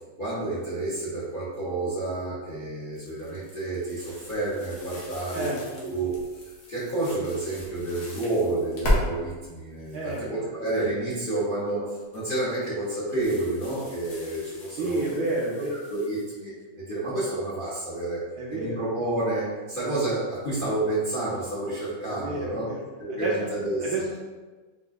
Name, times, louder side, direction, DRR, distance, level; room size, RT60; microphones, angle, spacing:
voice 1, 0.2-6.1 6.7-15.4 15.7-18.2 18.5-22.7 23.0-23.9, right 2 dB, 45° left, -10 dB, 0.7 m, -30 dB
sound 1, 2.9-9.0 9.6-10.2 12.0-12.4 13.1-16.3, left 1 dB, 65° left, 1.3 m, -35 dB
voice 2, 5.3-5.8 9.9-10.3 14.8-15.7 18.4-18.8 22.1-22.8 23.1-23.3 23.8-24.2, right 2 dB, 70° right, -3 dB, 0.9 m, -30 dB
4.9 x 2.4 x 2.3 m, 1.3 s
omnidirectional pair, 2.0 m